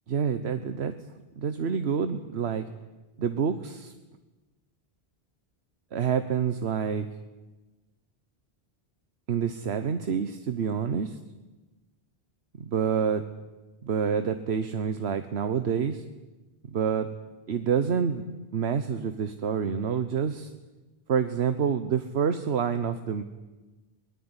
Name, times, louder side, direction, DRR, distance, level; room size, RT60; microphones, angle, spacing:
voice 1, 0.1-1.0 1.4-2.6 3.2-3.9 5.9-7.1 9.3-11.2 12.6-13.3 13.8-16.0 16.7-17.1 17.5-18.2 18.5-20.5 21.1-23.2, right 7 dB, 75° right, 10 dB, 1.3 m, -27 dB
23.0 x 19.0 x 9.8 m, 1.2 s
omnidirectional pair, 1.1 m